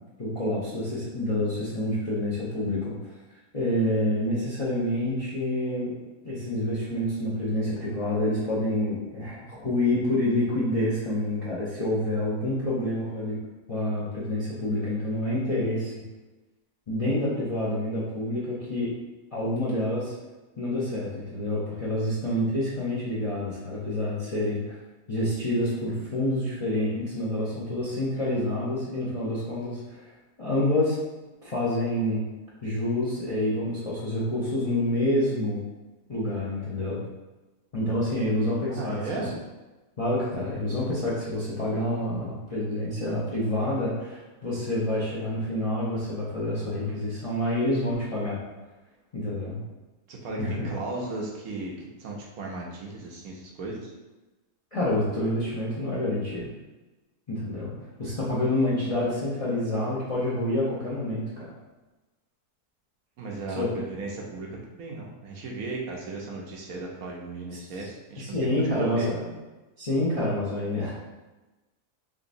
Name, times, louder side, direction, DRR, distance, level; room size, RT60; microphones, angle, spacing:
voice 1, 0.2-3.1 3.5-5.9 6.2-13.4 13.7-15.9 16.9-18.9 19.3-20.1 20.6-24.8 25.1-30.1 30.4-31.0 31.4-32.2 32.6-35.6 36.1-37.0 37.7-39.0 40.0-48.4 49.1-49.6 50.4-50.7 54.7-56.5 57.3-57.7 58.0-61.5 63.5-63.8 68.2-69.2 69.8-70.9, left 1 dB, 40° left, -8 dB, 0.5 m, -27 dB
voice 2, 38.7-39.3 50.1-53.9 63.2-69.1, right 3 dB, 70° right, -1 dB, 1.0 m, -36 dB
3.8 x 3.2 x 2.6 m, 1.1 s
omnidirectional pair, 1.7 m